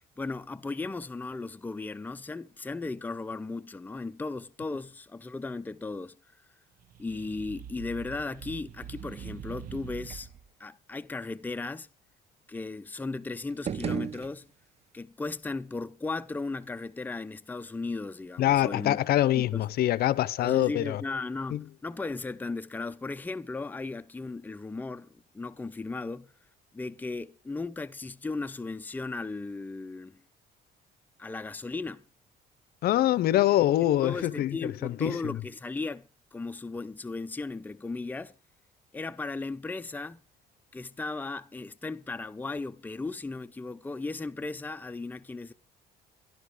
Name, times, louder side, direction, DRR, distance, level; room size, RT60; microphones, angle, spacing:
voice 1, 0.2-6.2 7.0-10.3 10.6-11.9 12.5-14.5 14.9-19.0 19.3-19.6 20.4-26.3 26.7-30.2 31.2-32.0 34.0-36.1 36.3-38.3 38.9-40.2 40.7-45.5, left 3 dB, 10° left, 0.6 m, -36 dB
sound 1, 6.8-10.5, right 9 dB, 55° right, 1.2 m, -44 dB
sound 2, 13.5-14.9, right 7 dB, 40° right, 0.7 m, -35 dB
voice 2, 18.4-21.0 21.5-21.6 32.8-35.4, left 13 dB, 65° left, 0.7 m, -25 dB
14.0 x 11.0 x 4.9 m
cardioid pair, 110°, 17 cm